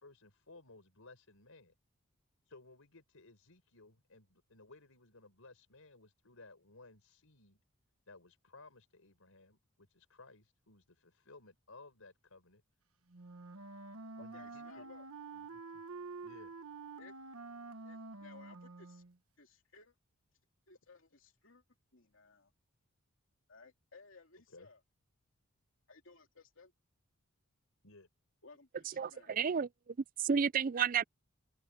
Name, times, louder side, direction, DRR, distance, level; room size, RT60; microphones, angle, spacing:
voice 1, 0.0-1.7 2.5-7.6 8.1-12.6 14.2-14.9 15.3-15.8 16.2-16.5 24.3-24.7 27.8-28.1, left 3 dB, 80° left, 4.6 m, -59 dB
Wind instrument woodwind instrument, 13.1-19.2, right 3 dB, 90° right, 1.2 m, -48 dB
voice 2, 14.3-15.1 17.0-17.1 17.8-19.0 19.4-20.0 20.7-21.6 21.9-22.5 23.5-24.8 25.9-26.7 28.4-29.4, left 4 dB, 65° left, 2.9 m, -59 dB
voice 3, 29.0-31.0, right 6 dB, 40° right, 0.4 m, -32 dB
open air
head